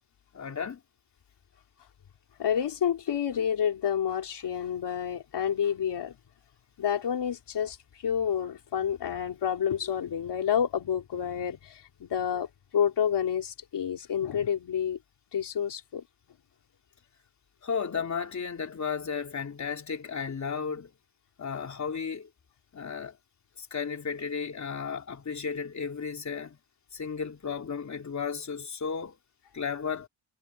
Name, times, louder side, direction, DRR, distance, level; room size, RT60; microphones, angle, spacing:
voice 1, 0.3-0.8 17.6-20.9 21.4-22.3 22.7-23.2 23.6-26.6 26.9-29.2 29.5-30.1, left 6 dB, 35° left, 3.5 m, -34 dB
voice 2, 2.4-6.2 6.8-15.0 15.3-16.0, left 8 dB, 55° left, 4.0 m, -29 dB
cardioid pair, 145°, 47 cm